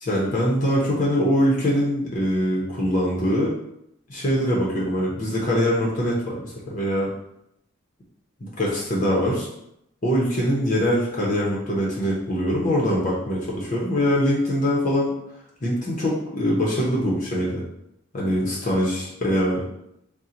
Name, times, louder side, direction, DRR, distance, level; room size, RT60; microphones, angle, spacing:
voice 1, 0.0-3.5 4.1-7.1 8.4-9.5 10.0-15.1 15.6-17.6 18.1-19.6, equal, 40° left, -4 dB, 0.7 m, -23 dB
3.7 x 2.2 x 4.2 m, 0.80 s
head